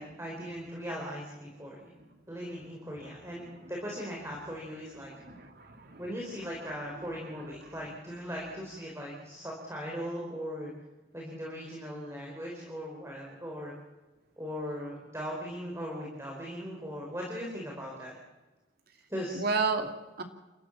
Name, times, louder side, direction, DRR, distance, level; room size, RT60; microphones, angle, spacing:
voice 1, 0.0-5.1 6.0-10.7 11.1-13.7 14.4-18.1 19.1-19.4, equal, 15° right, -2 dB, 4.5 m, -39 dB
voice 2, 5.1-6.0 19.3-20.2, right 4 dB, 55° right, 5 dB, 2.6 m, -32 dB
29.0 x 14.0 x 7.3 m, 1.1 s
head